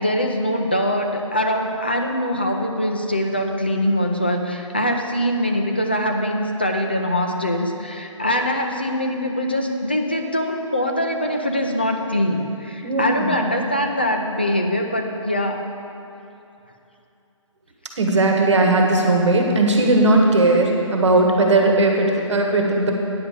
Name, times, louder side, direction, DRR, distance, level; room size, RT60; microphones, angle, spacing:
voice 1, 0.0-15.6, left 1 dB, 20° left, 2 dB, 0.3 m, -23 dB
voice 2, 12.8-13.3 18.0-22.9, right 2 dB, 60° right, 1 dB, 1.5 m, -17 dB
9.5 x 5.2 x 7.5 m, 2.8 s
hypercardioid pair, 180°, 17 cm